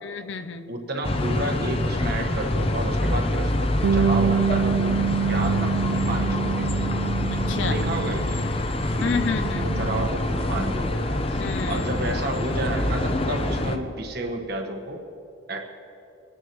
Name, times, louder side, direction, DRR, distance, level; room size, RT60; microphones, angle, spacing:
voice 1, 0.0-0.8 7.3-7.8 9.0-9.7 11.4-11.9, left 5 dB, 70° left, 9 dB, 0.6 m, -30 dB
voice 2, 0.7-5.0 5.3-6.7 7.7-8.4 8.9-11.4 11.7-15.0 15.5-15.6, right 1 dB, 50° right, 2 dB, 1.3 m, -31 dB
sound 1, 1.0-13.8, left 1 dB, 30° left, 0.6 m, -26 dB
Bass guitar, 3.8-8.6 8.9-10.1, right 6 dB, 85° right, 0.3 m, -26 dB
23.0 x 9.8 x 3.1 m, 2.7 s
head